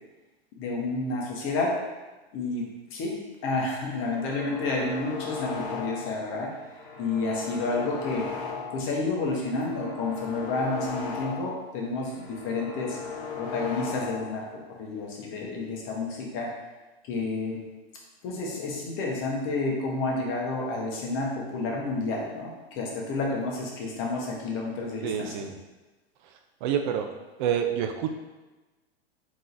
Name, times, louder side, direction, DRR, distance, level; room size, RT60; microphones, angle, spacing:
voice 1, 0.6-1.7 2.3-2.6 2.9-3.1 3.4-6.5 7.0-8.3 8.7-13.0 13.4-14.4 14.8-16.5 17.1-17.6 18.2-25.4, left 3 dB, 40° left, -2 dB, 1.1 m, -30 dB
sound 1, 3.9-6.2 6.6-8.9 9.3-11.7 12.0-14.4, left 5 dB, 60° left, 1.3 m, -37 dB
voice 2, 25.0-25.6 26.6-27.1 27.4-28.1, right 9 dB, 50° right, 5 dB, 0.4 m, -27 dB
3.7 x 3.0 x 3.8 m, 1.2 s
hypercardioid pair, 110°, 32 cm